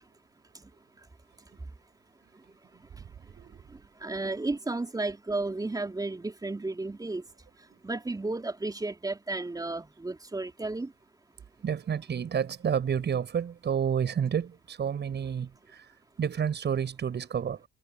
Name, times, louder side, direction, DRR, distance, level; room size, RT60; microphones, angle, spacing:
voice 1, 3.3-3.6 7.7-7.8 11.6-15.9 16.2-17.6, right 7 dB, 35° right, 6.1 m, -30 dB
voice 2, 4.0-7.2 7.8-10.9, right 2 dB, 10° right, 3.6 m, -33 dB
figure-of-eight pair, 60°, 31 cm